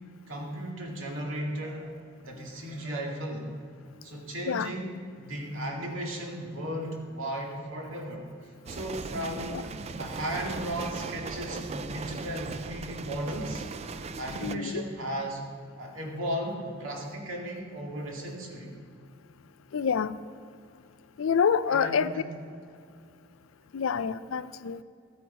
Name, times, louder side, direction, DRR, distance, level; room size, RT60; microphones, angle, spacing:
voice 1, 0.3-3.6 4.0-9.6 10.0-13.6 14.2-15.4 15.8-18.7 21.7-22.2, right 1 dB, 75° right, -1 dB, 2.1 m, -35 dB
sound 1, 8.7-14.6, right 4 dB, 30° right, 0.3 m, -38 dB
voice 2, 14.4-14.8 19.7-20.1 21.2-22.2 23.7-24.8, left 6 dB, 80° left, 15 dB, 0.4 m, -27 dB
13.5 x 9.2 x 4.1 m, 2.3 s
head